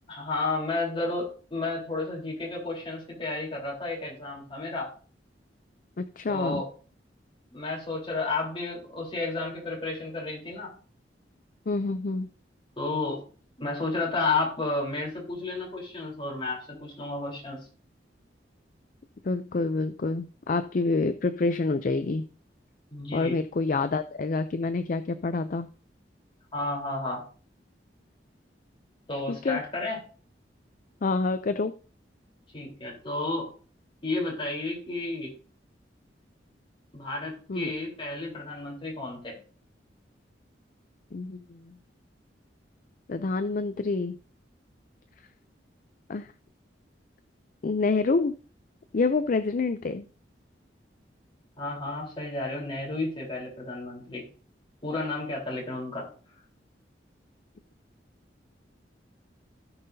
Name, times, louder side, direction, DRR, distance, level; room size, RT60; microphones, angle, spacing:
voice 1, 0.1-4.9 6.3-6.7 7.5-10.7 12.8-13.2 13.6-17.7 22.9-23.4 26.5-27.2 29.1-30.0 32.5-33.5 34.0-35.3 36.9-39.4 51.6-54.2 54.8-56.1, left 3 dB, 30° left, -3 dB, 3.7 m, -32 dB
voice 2, 6.0-6.6 11.7-12.3 19.2-22.2 23.1-25.7 29.3-29.6 31.0-31.7 37.5-37.7 41.1-41.8 43.1-44.2 46.1-46.3 47.6-48.3 48.9-50.1, left 3 dB, 45° left, 11 dB, 0.4 m, -27 dB
17.0 x 5.7 x 2.7 m, 0.39 s
head